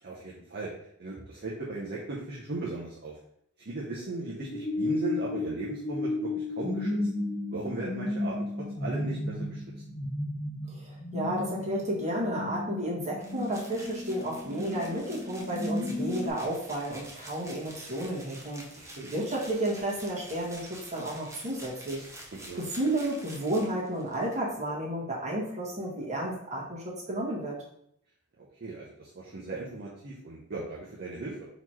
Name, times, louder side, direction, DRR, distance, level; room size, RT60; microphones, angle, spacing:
voice 1, 0.0-0.7 1.0-3.2 3.6-7.0 7.5-8.4 8.8-9.6 18.8-19.1 22.3-22.6 28.4-31.5, right 2 dB, 50° right, -5 dB, 0.7 m, -37 dB
sound 1, 4.0-16.3, left 2 dB, 25° left, 0.5 m, -34 dB
voice 2, 10.7-22.1 22.5-27.6, right 1 dB, 30° right, -4 dB, 1.4 m, -32 dB
sound 2, 13.2-24.4, right 1 dB, 15° right, 0.7 m, -48 dB
4.1 x 3.0 x 4.3 m, 0.72 s
head